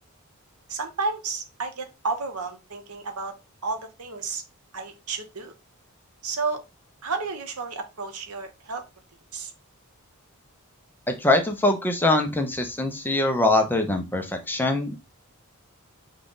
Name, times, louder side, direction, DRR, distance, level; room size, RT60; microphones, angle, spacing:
voice 1, 0.7-3.3 3.6-4.4 4.7-5.5 6.2-6.6 7.0-8.8 9.3-9.5, right 4 dB, 90° right, 6 dB, 1.0 m, -31 dB
voice 2, 11.1-15.0, left 2 dB, 10° left, 5 dB, 0.7 m, -23 dB
5.6 x 2.4 x 3.8 m, 0.25 s
head